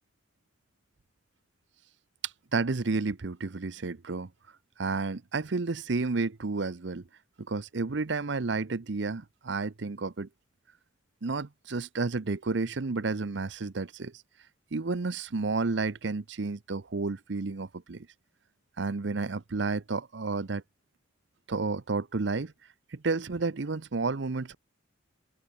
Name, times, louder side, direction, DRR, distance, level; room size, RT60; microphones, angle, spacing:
voice 1, 2.2-4.3 4.8-7.0 7.5-10.3 11.2-14.1 14.7-18.1 18.8-20.6 21.5-22.5 22.9-24.5, right 3 dB, 65° right, 0.7 m, -31 dB
head